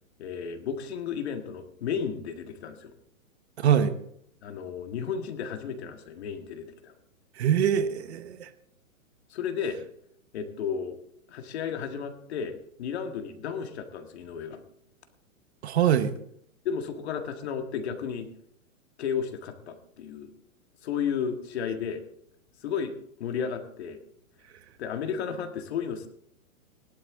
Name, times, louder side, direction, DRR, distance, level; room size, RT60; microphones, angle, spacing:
voice 1, 0.2-2.9 4.4-6.9 9.3-9.8 10.3-11.0 11.3-14.6 16.7-18.3 19.0-20.3 20.8-22.0 22.6-22.9 23.2-24.0 24.8-26.1, left 7 dB, 45° left, 6 dB, 1.7 m, -33 dB
voice 2, 3.6-3.9 7.4-8.5 15.6-16.1, right 9 dB, 50° right, 11 dB, 1.1 m, -23 dB
16.5 x 12.0 x 3.7 m, 0.71 s
hypercardioid pair, 160°, 43 cm